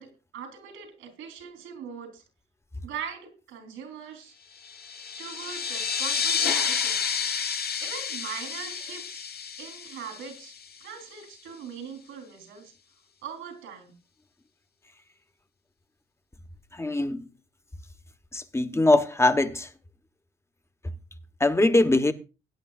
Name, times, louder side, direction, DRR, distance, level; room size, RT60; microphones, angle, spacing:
voice 1, 0.0-2.2 2.8-4.3 5.2-7.1 7.8-9.3 9.6-10.5 10.8-12.7 13.2-14.0, right 7 dB, 90° right, 3.9 m, -41 dB
sound 1, 4.6-10.9, left 6 dB, 50° left, 1.1 m, -30 dB
voice 2, 16.7-17.2 18.3-19.7 21.4-22.1, left 2 dB, 15° left, 1.2 m, -22 dB
19.0 x 9.5 x 2.5 m
cardioid pair, 90°, 20 cm